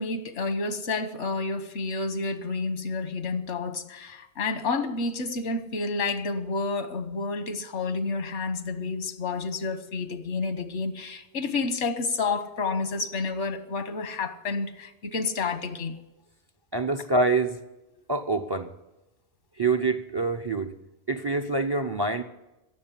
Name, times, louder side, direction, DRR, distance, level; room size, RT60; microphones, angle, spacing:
voice 1, 0.0-16.0, left 3 dB, 85° left, 11 dB, 1.4 m, -30 dB
voice 2, 16.7-17.6 18.1-18.7 19.6-20.7 21.1-22.2, right 3 dB, 30° right, 9 dB, 0.5 m, -25 dB
16.5 x 7.4 x 9.9 m, 1.0 s
omnidirectional pair, 1.2 m